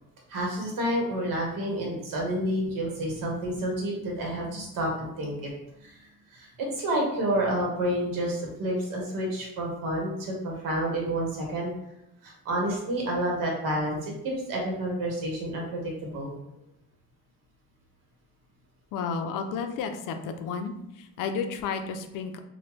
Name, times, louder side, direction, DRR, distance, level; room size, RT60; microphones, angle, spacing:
voice 1, 0.3-5.5 5.8-5.9 6.3-11.7 12.2-16.3, right 1 dB, 70° right, -1 dB, 1.2 m, -29 dB
voice 2, 18.9-22.4, left 5 dB, 70° left, 6 dB, 0.5 m, -32 dB
3.1 x 2.2 x 3.1 m, 0.83 s
cardioid pair, 135°, 34 cm